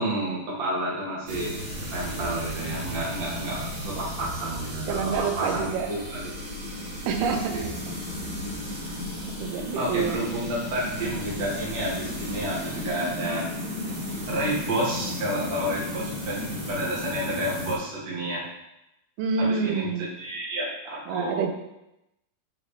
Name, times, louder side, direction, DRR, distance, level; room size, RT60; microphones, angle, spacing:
voice 1, 0.0-1.6 1.9-6.2 7.3-7.7 9.7-13.5 14.0-16.4 16.7-18.5 19.4-19.9 20.2-21.4, right 1 dB, 35° right, -6 dB, 1.5 m, -30 dB
sound 1, 1.3-17.8, left 1 dB, 70° right, 4.0 m, -34 dB
voice 2, 4.9-5.9 7.1-7.8 9.2-10.2 19.2-20.0 21.1-21.5, right 5 dB, 90° right, 5 dB, 2.7 m, -27 dB
8.0 x 5.6 x 3.3 m, 0.90 s
omnidirectional pair, 4.3 m